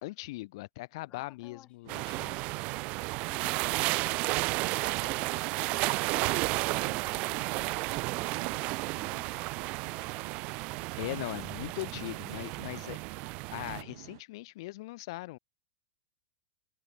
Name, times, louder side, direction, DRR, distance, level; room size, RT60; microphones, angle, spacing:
voice 1, 0.0-2.4 11.0-13.0 13.5-15.4, left 20 dB, 60° left, 3.3 m, -40 dB
voice 2, 1.1-1.7 3.2-10.4, left 13 dB, 35° left, 7.6 m, -56 dB
sound 1, 1.8-14.2, right 19 dB, 60° right, 6.0 m, -50 dB
sound 2, 1.9-13.8, right 24 dB, 45° right, 0.4 m, -32 dB
Stream / Splash splatter / Trickle dribble, 2.8-12.9, right 5 dB, 15° right, 7.0 m, -65 dB
hypercardioid pair, 115°, 3 cm